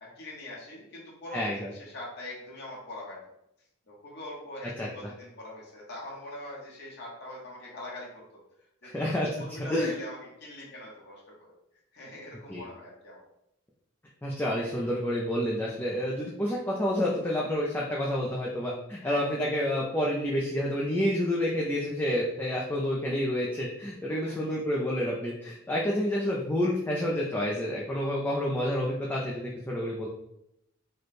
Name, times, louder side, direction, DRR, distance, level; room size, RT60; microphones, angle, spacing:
voice 1, 0.0-3.3 3.9-8.4 8.8-11.5 11.9-13.2 19.0-19.2 24.2-24.4, left 1 dB, 55° left, -4 dB, 1.0 m, -43 dB
voice 2, 1.3-1.7 4.8-4.9 8.8-9.3 9.7-9.9 12.5-12.6 14.2-30.1, left 1 dB, 10° left, -4 dB, 0.4 m, -29 dB
3.2 x 2.2 x 4.1 m, 0.81 s
head